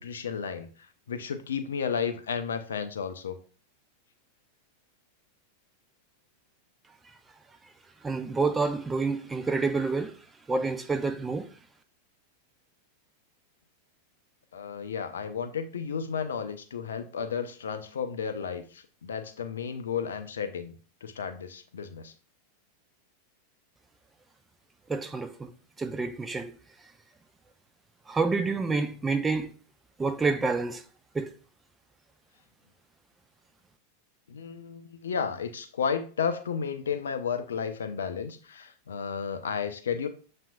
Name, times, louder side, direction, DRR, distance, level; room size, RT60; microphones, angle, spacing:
voice 1, 0.0-3.4 14.5-22.1 34.3-40.1, left 6 dB, 65° left, 0.5 m, -33 dB
voice 2, 8.0-10.1 10.5-11.5 24.9-25.5 25.8-26.5 28.1-29.5 30.0-30.8 31.1-31.3, right 4 dB, 15° right, 0.4 m, -28 dB
7.1 x 2.5 x 2.3 m
figure-of-eight pair, 90°, 0 cm